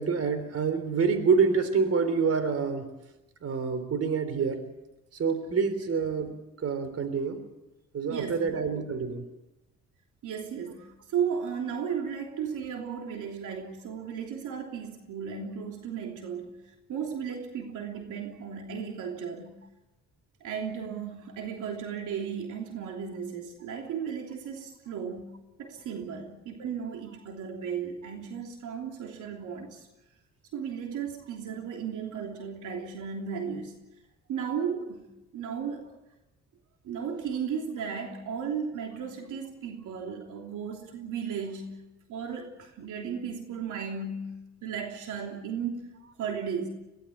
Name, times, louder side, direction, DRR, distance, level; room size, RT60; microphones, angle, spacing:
voice 1, 0.0-2.9 3.4-4.6 5.1-6.3 6.6-7.4 7.9-9.2, right 5 dB, 55° right, 11 dB, 3.7 m, -27 dB
voice 2, 8.1-8.5 10.2-19.5 20.4-25.3 25.6-29.9 30.5-33.7 34.3-35.0 35.3-36.0 36.8-41.8 42.1-45.9 46.2-46.7, right 7 dB, 80° right, 2 dB, 3.2 m, -35 dB
23.0 x 17.0 x 8.6 m, 0.97 s
cardioid pair, 90°, 30 cm